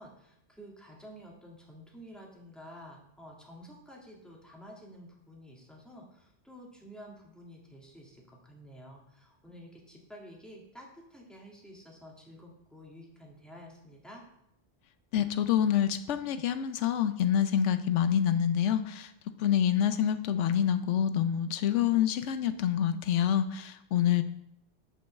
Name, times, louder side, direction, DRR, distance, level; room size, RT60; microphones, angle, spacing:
voice 1, 0.0-14.2, equal, ahead, -2 dB, 1.8 m, -50 dB
voice 2, 15.1-19.1 19.4-24.2, left 9 dB, 90° left, 11 dB, 0.9 m, -27 dB
7.1 x 5.4 x 6.7 m, 0.76 s
omnidirectional pair, 1.2 m